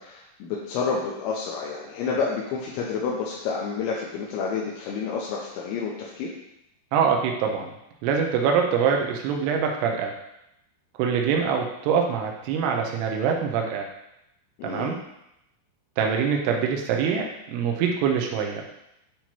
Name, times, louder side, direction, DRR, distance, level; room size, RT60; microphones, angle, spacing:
voice 1, 0.0-6.3 14.6-15.0, left 5 dB, 80° left, -3 dB, 2.9 m, -29 dB
voice 2, 6.9-7.7 8.0-10.1 11.0-13.9 14.6-15.0 16.0-18.7, right 6 dB, 85° right, 2 dB, 2.4 m, -24 dB
8.6 x 3.0 x 4.4 m, 0.83 s
omnidirectional pair, 5.5 m